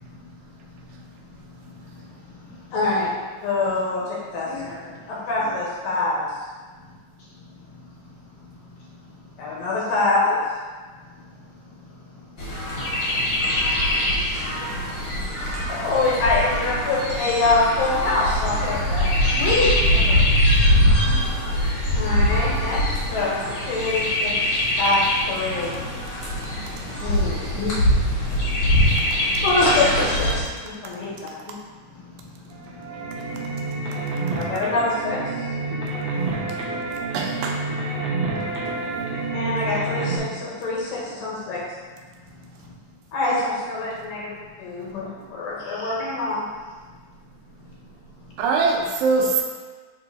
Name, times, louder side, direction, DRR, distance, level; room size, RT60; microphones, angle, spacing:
voice 1, 0.0-2.8 4.4-5.1 5.4-5.5 7.2-9.6 11.1-14.4 14.8-15.9 19.2-20.2 20.5-20.7 26.3-27.4 28.3-29.4 31.0-31.2 31.9-34.0 35.8-36.4 38.4-39.4 42.6-42.7 44.9-45.0 47.7-47.8 48.3-48.4, left 2 dB, 65° left, -5 dB, 1.9 m, -36 dB
voice 2, 2.7-3.1 3.4-4.5 5.1-6.2 9.4-10.4 15.7-19.1 21.9-22.8 23.1-24.3 24.8-25.0 25.3-25.8 27.0-27.8 29.4-30.4 30.8-31.1 31.5-31.6 34.3-35.2 39.3-41.6 43.1-44.3 44.6-46.5, left 3 dB, 85° left, -6 dB, 3.3 m, -24 dB
Chirp tweet, 12.4-30.4, left 1 dB, 45° left, 1.5 m, -22 dB
sound 1, 32.5-40.2, right 3 dB, 60° right, 1.5 m, -28 dB
voice 3, 37.1-37.6 41.3-41.5 48.4-49.4, right 4 dB, 80° right, 1 dB, 2.4 m, -23 dB
7.3 x 3.5 x 4.0 m, 1.4 s
omnidirectional pair, 3.9 m